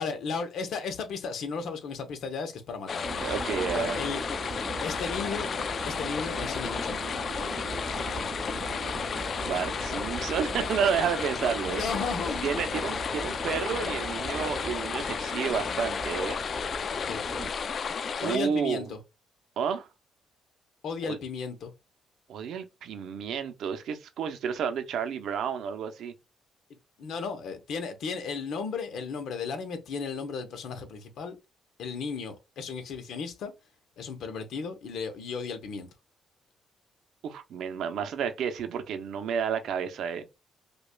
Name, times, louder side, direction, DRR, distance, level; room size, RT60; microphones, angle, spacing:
voice 1, 0.0-3.1 3.7-4.2 4.8-5.5 5.9-7.2 11.6-12.6 17.1-17.2 18.2-19.0 20.8-21.7 27.0-31.4 31.8-33.5 34.0-35.9, left 5 dB, 70° left, 0.8 m, -35 dB
sound 1, 2.9-18.4, left 6 dB, 50° left, 0.4 m, -32 dB
sound 2, 3.0-17.5, right 4 dB, 30° right, 0.7 m, -40 dB
voice 2, 3.2-4.0 9.4-11.8 12.4-16.4 18.2-18.9 19.6-19.9 21.0-21.2 22.3-26.1 37.2-40.3, right 7 dB, 75° right, 0.6 m, -31 dB
5.1 x 2.3 x 2.2 m
cardioid pair, 90°, 0 cm